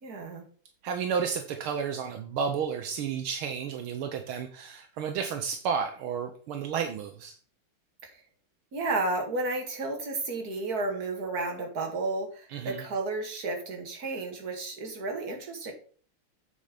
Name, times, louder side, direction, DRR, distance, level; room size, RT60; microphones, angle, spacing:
voice 1, 0.0-0.4 8.0-8.2 8.7-15.7, right 2 dB, 45° right, 3 dB, 2.3 m, -32 dB
voice 2, 0.8-7.3 12.5-12.9, right 6 dB, 80° right, 6 dB, 1.7 m, -32 dB
8.4 x 5.6 x 5.1 m, 0.43 s
omnidirectional pair, 2.3 m